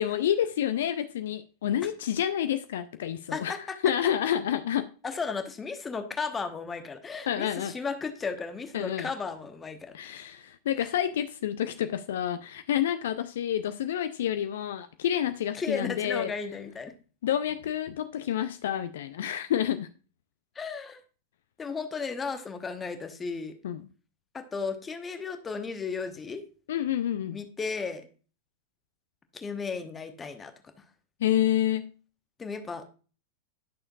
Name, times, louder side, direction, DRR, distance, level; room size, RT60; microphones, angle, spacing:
voice 1, 0.0-3.5 3.8-4.9 7.3-7.7 8.7-9.1 9.9-16.3 17.2-19.9 23.6-23.8 26.7-27.4 31.2-31.9, left 10 dB, 60° left, 0.4 m, -28 dB
voice 2, 5.0-10.1 10.8-10.9 15.5-16.9 20.5-21.0 21.6-23.5 24.3-26.4 27.3-28.1 29.3-30.5 32.4-32.9, left 5 dB, 15° left, 1.0 m, -34 dB
11.0 x 6.3 x 2.3 m
figure-of-eight pair, 90°, 0 cm